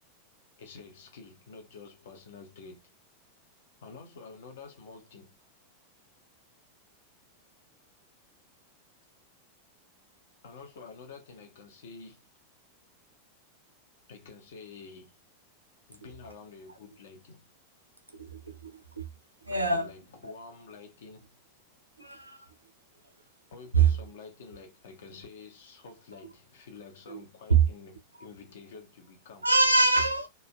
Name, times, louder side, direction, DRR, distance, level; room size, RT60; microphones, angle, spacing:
voice 1, 0.6-2.8 3.8-5.4 10.4-12.2 14.1-15.1 15.9-17.4 19.5-21.4 23.5-29.5, left 4 dB, 60° left, 0.9 m, -48 dB
voice 2, 18.2-18.7 19.0-19.1 19.5-19.9 22.0-22.4 23.7-23.9 27.1-27.2 27.5-27.6 29.4-30.3, right 4 dB, 85° right, 0.5 m, -24 dB
3.0 x 2.5 x 2.3 m
figure-of-eight pair, 90°, 0 cm